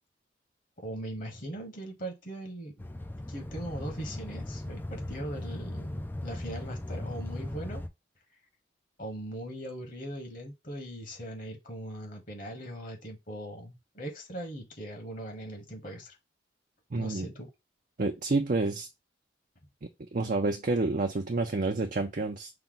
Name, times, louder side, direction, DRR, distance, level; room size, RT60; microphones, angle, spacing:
voice 1, 0.8-2.7 3.3-7.8 9.0-16.2 17.0-17.5, right 1 dB, 45° left, 1.4 m, -40 dB
sound 1, 2.8-7.9, left 1 dB, 10° left, 0.3 m, -38 dB
voice 2, 16.9-17.3 18.0-18.9 19.8-22.5, right 3 dB, 45° right, 0.5 m, -29 dB
5.7 x 2.2 x 3.8 m
head